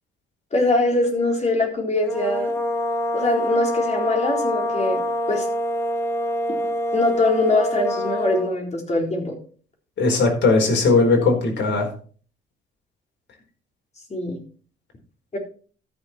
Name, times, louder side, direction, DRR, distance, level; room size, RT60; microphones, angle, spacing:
voice 1, 0.5-2.5 3.1-5.0 5.3-5.5 6.9-9.4 14.1-14.4 15.3-15.4, left 2 dB, 35° left, 1 dB, 4.1 m, -22 dB
sound 1, 2.0-8.6, equal, 15° left, 1.8 m, -25 dB
voice 2, 10.0-11.9, left 3 dB, 65° left, 3 dB, 4.2 m, -18 dB
13.5 x 6.7 x 4.4 m, 0.42 s
cardioid pair, 90°, 20 cm